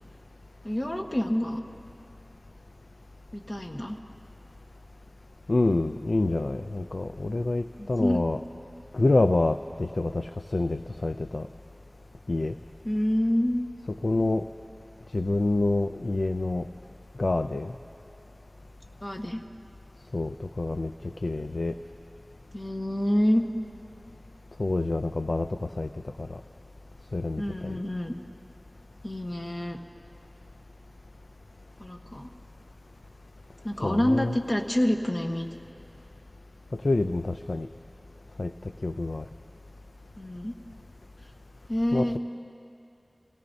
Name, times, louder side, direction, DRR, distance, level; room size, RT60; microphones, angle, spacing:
voice 1, 0.6-1.6 3.3-4.0 7.8-8.2 12.8-13.7 19.0-19.4 22.5-23.4 27.4-28.2 29.0-29.8 31.8-32.3 33.6-35.5 40.2-40.6 41.7-42.2, left 1 dB, 40° left, 2 dB, 1.2 m, -27 dB
voice 2, 5.5-8.4 8.9-11.5 12.3-12.5 14.0-14.4 15.1-16.7 17.2-17.7 20.1-20.9 21.2-21.7 24.6-25.9 26.2-26.4 27.1-27.8 33.8-34.4 36.7-37.7 38.4-38.5 38.8-39.3 41.9-42.2, left 2 dB, 80° left, 8 dB, 0.4 m, -27 dB
28.5 x 17.5 x 2.7 m, 2.9 s
wide cardioid pair, 50°, 0 cm